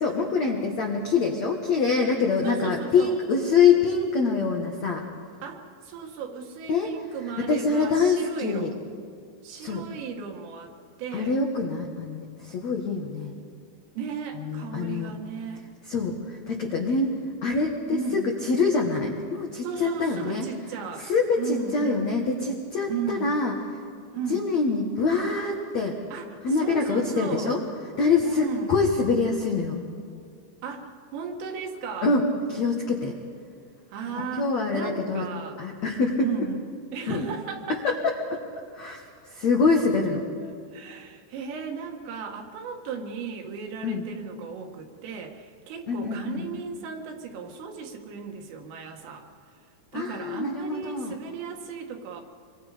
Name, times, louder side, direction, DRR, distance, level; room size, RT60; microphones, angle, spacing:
voice 1, 0.0-5.0 6.7-6.9 7.4-8.7 9.6-9.8 11.1-13.3 14.3-15.1 15.9-17.1 17.4-20.5 21.0-23.5 24.3-26.0 26.4-27.6 28.0-29.8 32.0-33.2 34.1-35.2 35.6-36.3 37.1-37.3 38.0-38.1 38.7-39.0 39.3-40.3 43.8-44.0 45.9-46.5 49.9-51.2, left 4 dB, 90° left, 0 dB, 1.5 m, -25 dB
voice 2, 2.4-3.2 5.4-8.7 9.4-10.7 11.0-11.4 14.0-15.7 17.9-18.3 19.6-21.1 21.4-22.0 22.9-23.4 24.1-24.5 26.1-27.6 28.2-28.7 30.6-32.1 33.9-35.6 36.2-38.0 40.4-49.3 49.9-52.2, right 5 dB, 80° right, 2 dB, 4.3 m, -35 dB
27.0 x 24.0 x 5.1 m, 2.2 s
omnidirectional pair, 5.8 m